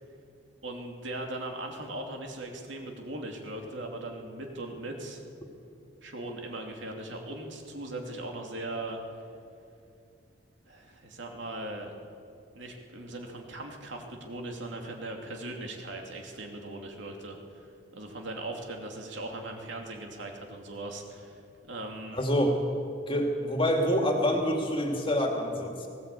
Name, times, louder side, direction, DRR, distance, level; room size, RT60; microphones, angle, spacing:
voice 1, 0.6-5.2 6.0-9.0 10.7-11.9 12.5-21.4 21.7-22.2, right 2 dB, 65° right, 2 dB, 2.7 m, -39 dB
voice 2, 22.1-22.6 23.1-25.9, equal, 25° left, 2 dB, 2.4 m, -26 dB
18.5 x 18.0 x 8.5 m, 2.6 s
head